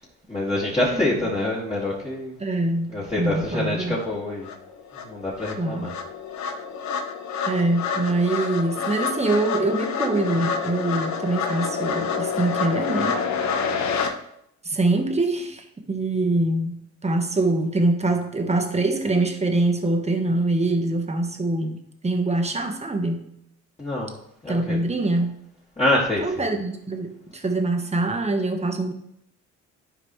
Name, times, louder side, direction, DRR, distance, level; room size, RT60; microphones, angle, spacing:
voice 1, 0.3-2.4 2.9-4.5 4.9-5.9 23.8-24.2 24.4-24.8 25.8-26.5, left 1 dB, 20° left, -8 dB, 2.3 m, -26 dB
voice 2, 2.4-4.0 5.6-5.9 7.5-13.2 14.6-23.3 24.5-25.4 26.2-28.9, right 2 dB, 20° right, 5 dB, 1.2 m, -24 dB
sound 1, 4.0-4.1 4.4-14.1, left 5 dB, 65° left, 0.9 m, -28 dB
11.5 x 4.9 x 3.2 m, 0.76 s
cardioid pair, 90°, 30 cm